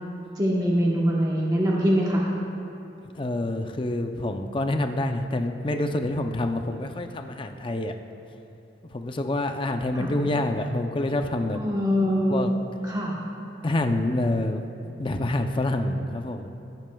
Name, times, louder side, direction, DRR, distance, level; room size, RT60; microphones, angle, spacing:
voice 1, 0.4-2.2 9.9-10.1 11.5-12.6 12.9-13.1, equal, 20° right, -5 dB, 1.1 m, -23 dB
voice 2, 3.1-7.9 8.9-11.6 12.3-12.5 13.6-14.6 15.0-16.5, left 1 dB, 25° left, 6 dB, 0.5 m, -27 dB
15.5 x 12.0 x 2.3 m, 2.7 s
head